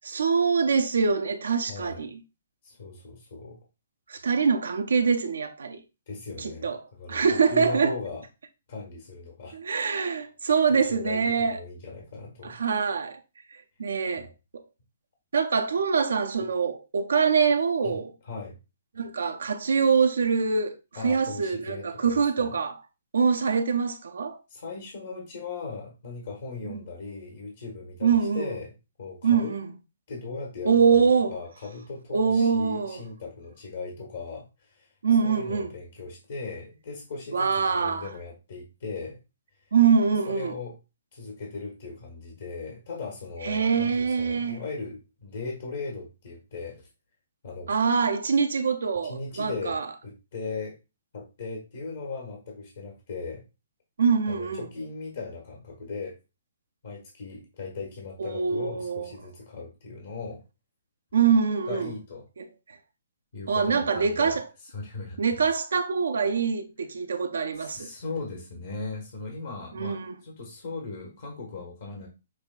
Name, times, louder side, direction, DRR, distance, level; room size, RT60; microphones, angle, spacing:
voice 1, 0.1-2.2 4.1-5.8 6.4-6.8 7.1-8.0 9.5-11.6 12.4-13.2 13.8-14.6 15.3-18.1 19.0-20.8 21.0-22.8 23.1-24.4 26.6-26.8 28.0-28.5 29.2-29.7 30.6-31.3 32.1-33.0 35.0-35.7 37.3-38.1 39.7-40.5 43.4-44.6 47.7-49.9 54.0-54.7 58.2-59.1 61.1-61.9 62.4-62.5 63.5-64.4 65.2-67.9 69.7-70.1, right 5 dB, 75° right, 0.5 m, -24 dB
voice 2, 1.7-2.1 2.6-3.6 6.1-8.2 8.7-9.6 9.9-10.2 10.7-12.6 17.8-18.0 18.2-18.6 20.9-22.5 24.5-29.5 30.1-34.9 35.2-39.2 40.3-40.8 41.1-46.9 47.4-47.7 49.0-50.7 51.1-53.4 54.3-56.1 56.8-60.4 61.7-62.2 63.3-65.2 67.5-72.1, left 4 dB, 60° left, 1.2 m, -38 dB
6.2 x 2.3 x 2.3 m
figure-of-eight pair, 130°, 0 cm